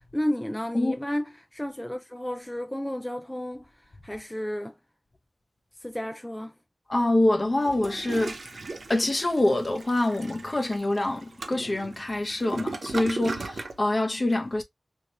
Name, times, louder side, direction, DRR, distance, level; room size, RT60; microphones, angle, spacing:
voice 1, 0.1-4.8 5.8-6.6, equal, 10° left, 0.3 m, -32 dB
voice 2, 6.9-8.6 8.9-14.6, left 1 dB, 40° left, 0.8 m, -25 dB
Toilet flush, 7.6-13.8, right 3 dB, 80° right, 0.5 m, -37 dB
3.0 x 2.8 x 2.8 m
wide cardioid pair, 70°, 0 cm